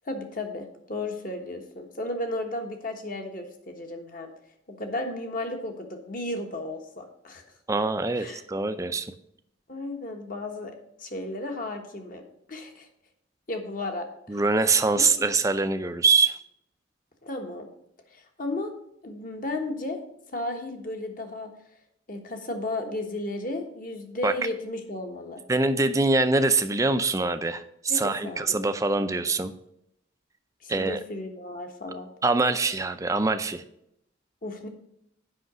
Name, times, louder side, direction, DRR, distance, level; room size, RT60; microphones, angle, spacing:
voice 1, 0.0-4.3 4.7-7.4 8.2-8.4 9.7-12.2 12.5-12.9 13.5-14.4 15.0-15.2 17.2-17.7 18.1-18.7 19.0-20.0 20.3-21.5 22.1-25.4 27.9-28.6 30.6-32.1 34.4-34.7, left 2 dB, 45° left, 4 dB, 1.3 m, -34 dB
voice 2, 7.7-9.1 14.3-16.4 24.2-24.3 25.5-29.5 30.7-31.0 32.2-33.6, right 3 dB, 15° right, 9 dB, 0.4 m, -24 dB
7.9 x 5.7 x 6.2 m, 0.76 s
head